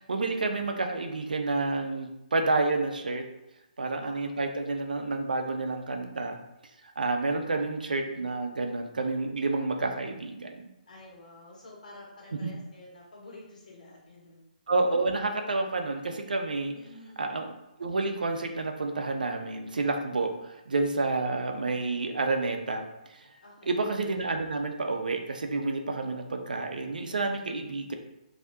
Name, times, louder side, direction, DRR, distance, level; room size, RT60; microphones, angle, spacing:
voice 1, 0.0-3.2 3.8-6.4 6.8-10.6 12.4-12.5 14.7-16.7 17.2-22.8 23.1-23.3 23.7-27.9, right 3 dB, 80° right, 5 dB, 0.5 m, -29 dB
voice 2, 10.9-14.4 16.7-17.3 23.4-23.9 27.4-27.6, left 2 dB, 65° left, -3 dB, 1.3 m, -50 dB
3.3 x 2.7 x 2.7 m, 0.91 s
figure-of-eight pair, 135°, 5 cm